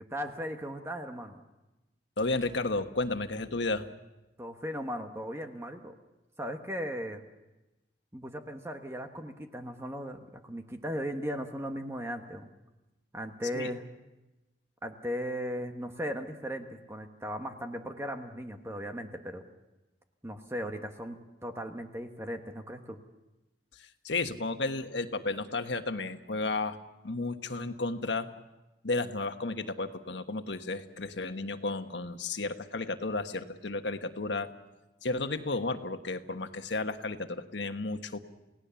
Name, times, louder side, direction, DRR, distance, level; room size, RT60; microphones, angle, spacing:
voice 1, 0.0-1.4 4.4-5.9 6.4-7.2 8.1-12.5 13.1-13.9 14.8-19.4 20.2-23.0, equal, 15° right, 5 dB, 1.3 m, -37 dB
voice 2, 2.2-3.8 13.5-13.7 24.0-26.8 27.0-28.3 28.8-34.5 35.0-38.2, left 3 dB, 75° left, 8 dB, 1.4 m, -33 dB
29.5 x 18.0 x 7.1 m, 1.0 s
head